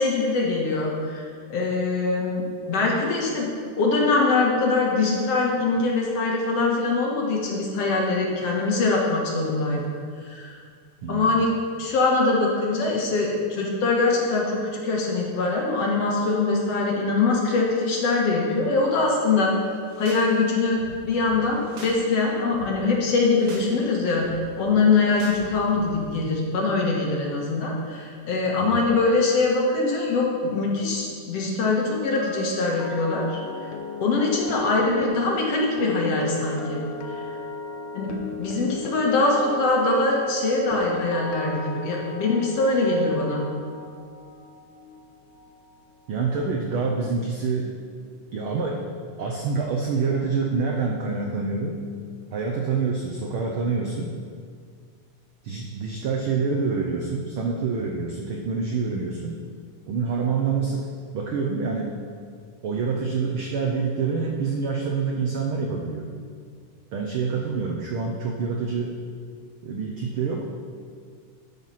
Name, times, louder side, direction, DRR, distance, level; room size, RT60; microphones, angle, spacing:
voice 1, 0.0-3.5 3.8-9.8 10.2-10.6 11.1-11.5 11.8-19.5 20.0-33.4 34.0-37.2 37.9-43.5, left 3 dB, 60° left, -2 dB, 2.3 m, -23 dB
voice 2, 11.0-11.4 28.6-28.8 46.1-47.8 48.3-48.8 49.2-51.9 52.3-54.1 55.4-59.4 59.9-60.9 61.1-62.0 62.6-66.1 66.9-68.9 69.6-70.5, right 4 dB, 85° right, 0 dB, 1.1 m, -26 dB
sound 1, 19.7-20.3 20.6-22.0 22.3-22.7 23.1-23.7 24.0-26.1, right 2 dB, 65° right, 1.0 m, -42 dB
sound 2, 31.9-46.0 46.3-46.6, left 2 dB, 85° left, 2.4 m, -36 dB
12.5 x 5.7 x 5.8 m, 2.1 s
omnidirectional pair, 3.5 m